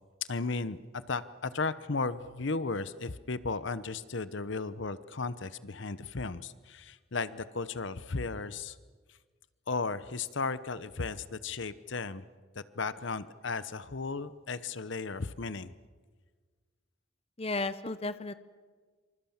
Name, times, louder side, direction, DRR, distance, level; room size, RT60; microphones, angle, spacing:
voice 1, 0.3-8.7 9.7-12.2 12.8-15.7, left 4 dB, 60° left, 15 dB, 0.9 m, -35 dB
voice 2, 17.4-18.3, left 3 dB, 30° left, 13 dB, 0.9 m, -33 dB
26.0 x 26.0 x 7.2 m, 1.5 s
head